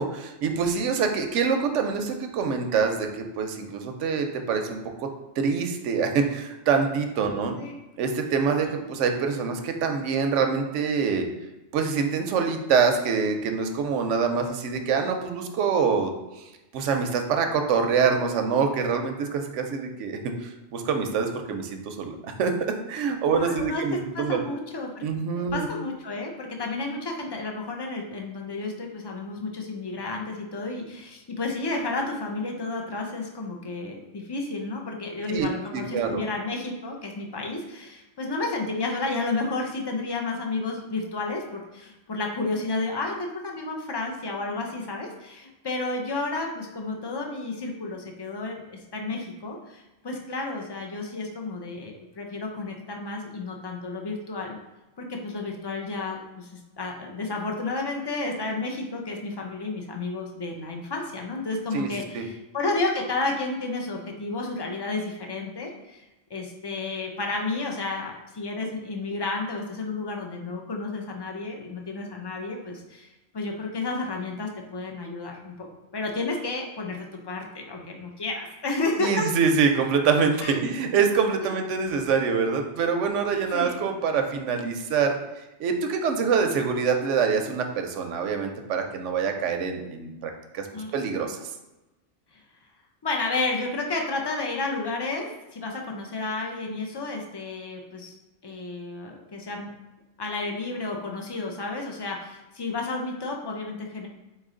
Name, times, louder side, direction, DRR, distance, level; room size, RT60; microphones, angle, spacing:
voice 1, 0.0-5.1 5.4-7.6 8.0-11.2 11.7-16.1 16.7-22.1 22.4-22.5 22.9-24.4 25.0-25.7 35.3-35.5 35.7-36.2 61.7-62.2 79.0-85.1 85.6-90.7 90.9-91.4, right 5 dB, 85° right, 5 dB, 0.9 m, -25 dB
voice 2, 23.3-25.0 25.4-54.6 55.0-66.0 66.3-73.1 73.3-75.7 75.9-79.1 80.4-80.6 81.5-81.6 83.5-83.7 90.7-90.9 92.3-92.4 93.0-98.1 98.4-99.7 100.2-104.1, left 3 dB, 35° left, 1 dB, 0.4 m, -31 dB
4.1 x 3.2 x 3.7 m, 1.0 s
omnidirectional pair, 1.2 m